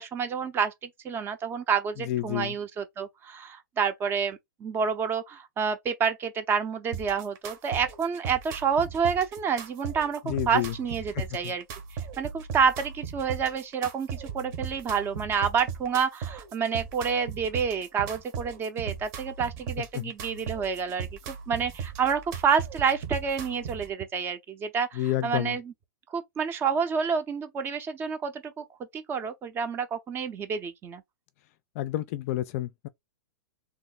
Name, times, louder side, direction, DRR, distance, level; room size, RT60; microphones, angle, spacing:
voice 1, 0.0-11.6 11.9-25.6 26.1-28.6 28.9-31.0, right 6 dB, 20° right, 0.6 m, -29 dB
voice 2, 2.0-2.6 10.2-10.8 11.1-11.5 19.8-20.1 24.9-25.6 31.7-32.9, left 14 dB, 45° left, 0.4 m, -30 dB
sound 1, 6.9-23.9, right 7 dB, 45° right, 1.0 m, -38 dB
2.8 x 2.1 x 4.0 m
hypercardioid pair, 135°, 11 cm